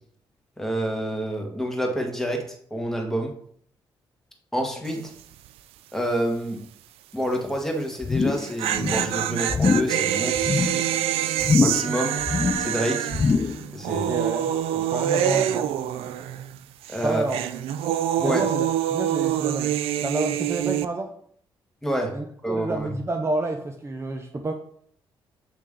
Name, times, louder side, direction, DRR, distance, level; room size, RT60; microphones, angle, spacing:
voice 1, 0.6-3.4 4.5-5.1 5.9-6.7 7.1-10.8 11.6-12.2 12.6-13.1 13.7-14.1 16.9-17.2 18.2-18.5 21.8-22.9, equal, 5° left, 1 dB, 1.7 m, -28 dB
sound 1, 4.8-5.2 5.5-5.6 8.2-16.6 16.8-20.9, right 11 dB, 85° right, 0.4 m, -26 dB
sound 2, 8.0-8.5 8.8-9.1 9.5-10.0 10.4-10.8 11.4-12.0 12.2-12.7 13.1-13.7 14.0-14.1, left 5 dB, 30° left, 0.4 m, -23 dB
voice 2, 13.9-15.7 17.0-17.4 18.2-19.7 20.0-21.1 22.1-24.5, right 2 dB, 30° right, 4 dB, 0.7 m, -29 dB
8.2 x 3.2 x 3.7 m, 0.62 s
supercardioid pair, 65°, 10 cm